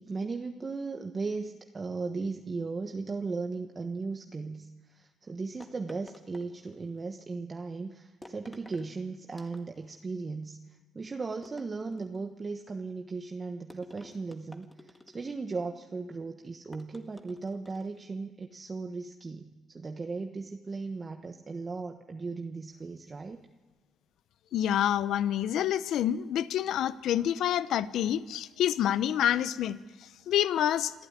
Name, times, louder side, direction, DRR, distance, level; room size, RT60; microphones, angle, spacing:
voice 1, 0.0-4.7 5.0-10.6 10.9-14.7 15.1-23.4, right 4 dB, 30° right, 5 dB, 1.3 m, -37 dB
sound 1, 5.6-7.0 8.2-8.9 9.3-10.0 11.4-12.3 13.7-15.5 16.7-18.0, left 1 dB, 10° left, 2.0 m, -52 dB
voice 2, 24.5-29.8 30.3-30.9, left 11 dB, 80° left, 16 dB, 0.8 m, -27 dB
26.5 x 14.0 x 9.8 m, 1.3 s
cardioid pair, 90°, 0 cm